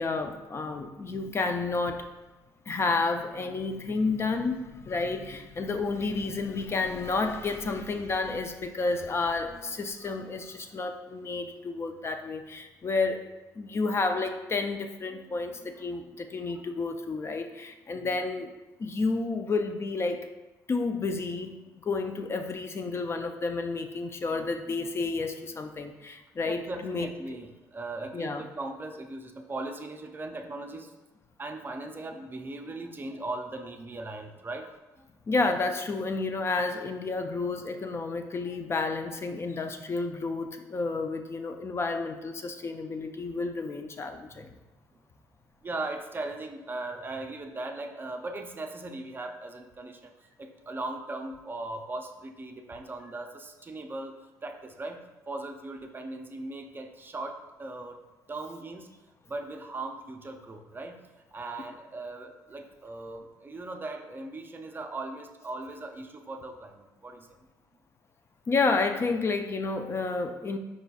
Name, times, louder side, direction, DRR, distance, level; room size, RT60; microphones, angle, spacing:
voice 1, 0.0-2.1 2.7-13.3 13.6-18.5 18.8-20.3 20.7-27.1 28.1-28.4 35.3-44.5 68.5-70.6, left 3 dB, 35° left, 6 dB, 0.4 m, -30 dB
voice 2, 15.1-15.8 16.3-16.6 17.9-18.1 24.3-25.1 26.4-30.9 31.4-34.7 38.5-38.6 44.3-44.5 45.6-50.1 50.4-54.1 54.4-58.0 58.3-58.9 59.3-61.0 61.3-67.3, right 2 dB, 25° right, 5 dB, 0.4 m, -39 dB
4.8 x 3.9 x 2.3 m, 1.1 s
cardioid pair, 85°, 8 cm